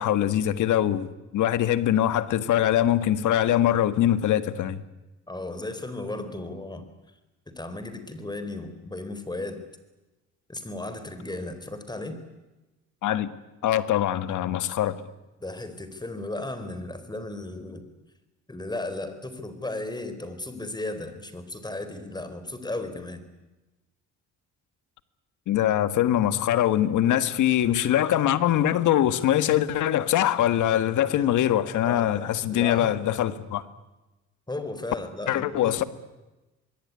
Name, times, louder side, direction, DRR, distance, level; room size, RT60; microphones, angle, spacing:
voice 1, 0.0-4.8 13.0-13.3 13.6-15.0 25.5-33.6 35.3-35.8, left 11 dB, 80° left, 1.6 m, -23 dB
voice 2, 5.3-6.8 7.5-9.6 10.5-12.2 15.4-17.8 18.5-23.2 31.8-33.1 34.5-35.9, left 2 dB, 15° left, 4.3 m, -35 dB
26.0 x 21.0 x 9.8 m
cardioid pair, 90°, 30 cm